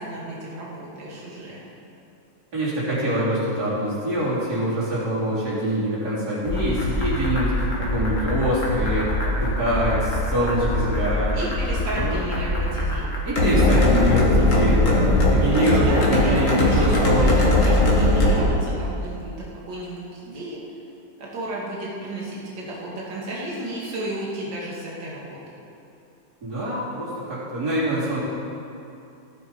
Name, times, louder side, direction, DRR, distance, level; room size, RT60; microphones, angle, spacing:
voice 1, 0.0-1.6 11.3-13.1 15.6-20.6 21.2-25.4, right 1 dB, 65° right, -6 dB, 2.9 m, -32 dB
voice 2, 2.5-11.4 11.9-12.2 13.2-17.3 26.4-28.2, equal, 50° right, -9 dB, 4.0 m, -24 dB
sound 1, 6.5-18.4, left 1 dB, 40° left, 2.0 m, -21 dB
16.5 x 7.8 x 5.4 m, 2.7 s
omnidirectional pair, 2.2 m